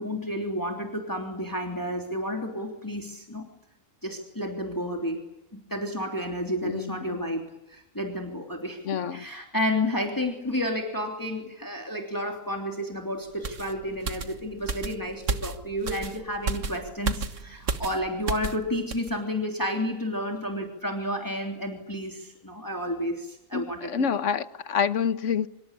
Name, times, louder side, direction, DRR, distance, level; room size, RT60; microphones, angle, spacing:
voice 1, 0.0-3.5 4.0-5.2 5.5-24.0, left 1 dB, 15° left, 3.1 m, -31 dB
voice 2, 6.6-7.2 8.8-9.3 23.5-25.5, left 7 dB, 65° left, 1.5 m, -27 dB
sound 1, 13.4-18.6 18.9-19.1, right 4 dB, 70° right, 1.8 m, -32 dB
25.5 x 24.0 x 8.7 m
omnidirectional pair, 1.4 m